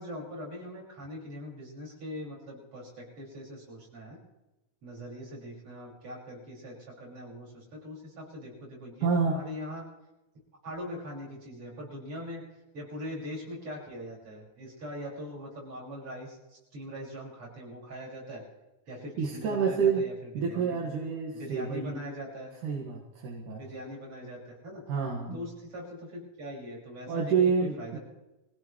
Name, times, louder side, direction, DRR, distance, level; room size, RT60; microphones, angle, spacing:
voice 1, 0.0-4.2 4.8-9.8 10.6-12.4 12.7-18.4 18.9-20.1 20.4-20.9 21.3-22.5 23.5-24.8 25.3-27.3 27.6-28.0, equal, 45° right, -4 dB, 6.8 m, -41 dB
voice 2, 9.0-9.4 19.2-20.0 20.4-22.0 22.6-23.6 24.9-25.4 27.1-28.0, right 5 dB, 75° right, -2 dB, 3.4 m, -28 dB
24.0 x 16.5 x 3.2 m, 0.98 s
omnidirectional pair, 3.6 m